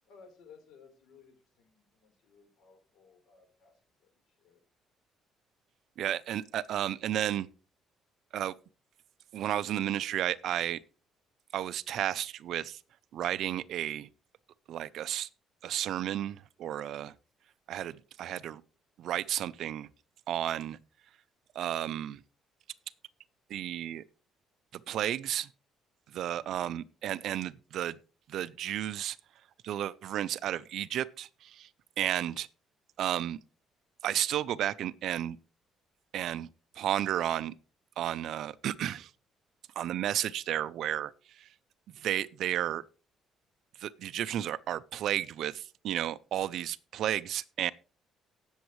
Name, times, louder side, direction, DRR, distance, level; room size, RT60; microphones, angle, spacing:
voice 1, 0.0-4.6 26.4-26.8, left 5 dB, 90° left, 3.9 m, -59 dB
voice 2, 6.0-7.5 8.3-8.5 9.3-10.8 11.5-12.8 13.1-14.1 14.7-15.3 15.6-17.1 17.7-18.6 19.0-19.9 20.3-20.8 21.5-22.2 23.5-24.0 24.7-25.5 26.1-28.0 28.3-29.2 29.6-31.7 32.0-32.5 33.0-33.4 34.0-35.4 36.1-36.5 36.8-37.5 38.0-39.1 39.8-41.5 41.9-42.8 43.8-47.7, right 11 dB, 60° right, 0.5 m, -32 dB
18.5 x 7.2 x 3.1 m
cardioid pair, 160°, 0 cm